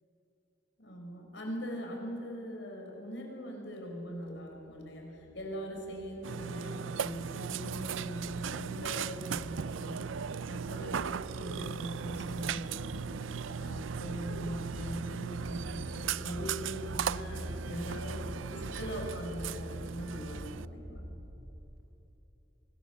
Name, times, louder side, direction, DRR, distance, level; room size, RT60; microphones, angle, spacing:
voice 1, 0.8-13.1 13.4-21.0, equal, 70° left, 1 dB, 4.8 m, -41 dB
sound 1, 4.5-21.8, equal, 50° right, 2.3 m, -45 dB
Burping eructation, 6.2-20.7, right 7 dB, 90° right, 0.5 m, -38 dB
24.5 x 19.0 x 7.0 m, 3.0 s
head